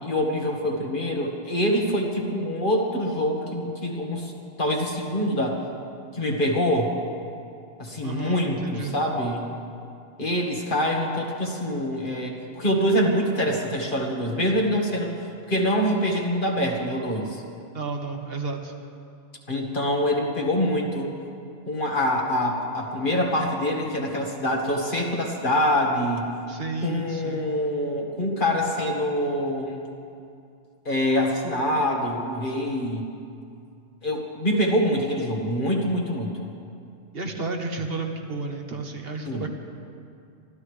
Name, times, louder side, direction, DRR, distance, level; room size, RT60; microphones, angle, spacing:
voice 1, 0.0-4.3 4.6-5.6 6.1-7.0 7.8-9.5 10.2-15.1 15.5-17.4 19.5-21.1 21.7-26.3 26.8-29.8 30.9-33.1 34.0-36.5 39.3-39.5, equal, 45° left, 0 dB, 1.8 m, -25 dB
voice 2, 8.0-8.9 17.7-18.7 26.5-27.5 37.1-39.5, right 3 dB, 55° right, 3 dB, 1.3 m, -32 dB
24.0 x 15.0 x 3.3 m, 2.5 s
omnidirectional pair, 1.2 m